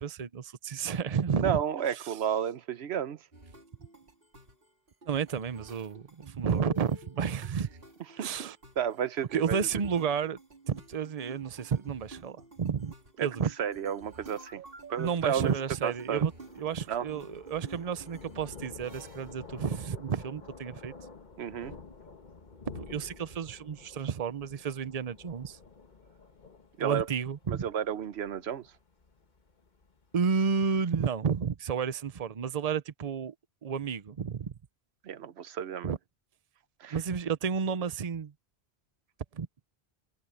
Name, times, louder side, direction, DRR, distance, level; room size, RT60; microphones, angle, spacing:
voice 1, 0.0-1.6 5.1-7.7 8.2-8.6 9.3-10.4 10.7-12.9 13.2-13.5 15.0-20.9 22.7-25.6 26.8-27.6 30.1-33.3 33.6-34.5 35.8-36.0 36.9-38.3 39.3-39.5, right 6 dB, 40° right, 0.8 m, -31 dB
voice 2, 1.4-3.2 8.2-8.5 8.8-9.7 13.2-13.3 13.6-14.6 14.9-15.5 15.8-16.2 16.9-17.1 21.4-21.7 26.8-27.1 27.5-28.7 35.0-35.9 36.8-37.0, right 8 dB, 85° right, 1.0 m, -32 dB
sound 1, 3.3-19.4, right 2 dB, 60° right, 3.3 m, -51 dB
Thunder, 13.7-30.6, left 4 dB, 45° left, 1.4 m, -50 dB
omnidirectional pair, 1.1 m